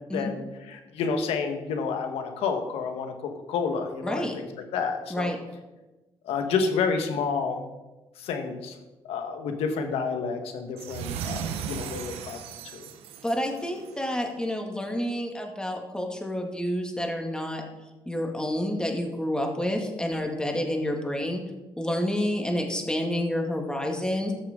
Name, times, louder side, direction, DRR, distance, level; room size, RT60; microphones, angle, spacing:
voice 1, 0.1-4.5 4.7-5.3 6.2-7.6 8.2-8.7 9.1-12.4 12.7-12.9, left 5 dB, 85° left, 5 dB, 1.4 m, -29 dB
voice 2, 4.0-4.4 5.1-5.4 13.2-17.6 18.1-21.4 21.8-24.3, left 1 dB, 10° left, 2 dB, 2.0 m, -29 dB
sound 1, 10.8-14.1, right 8 dB, 90° right, 0.8 m, -36 dB
14.0 x 6.9 x 3.7 m, 1.1 s
cardioid pair, 75°, 10 cm